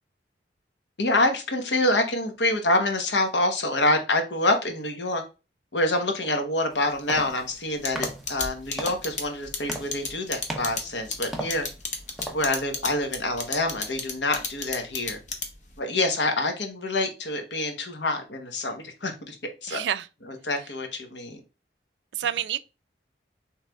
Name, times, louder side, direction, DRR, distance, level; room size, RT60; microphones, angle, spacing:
voice 1, 1.0-5.2 5.7-11.7 12.3-15.2 15.8-19.4 19.6-19.8 20.3-21.4, left 2 dB, 80° left, 0.9 m, -26 dB
sound 1, 6.7-12.8, right 1 dB, ahead, 0.7 m, -39 dB
sound 2, 7.8-15.7, left 5 dB, 40° left, 0.8 m, -31 dB
voice 2, 19.7-20.1 22.1-22.6, right 10 dB, 75° right, 0.3 m, -28 dB
6.0 x 3.3 x 2.3 m
head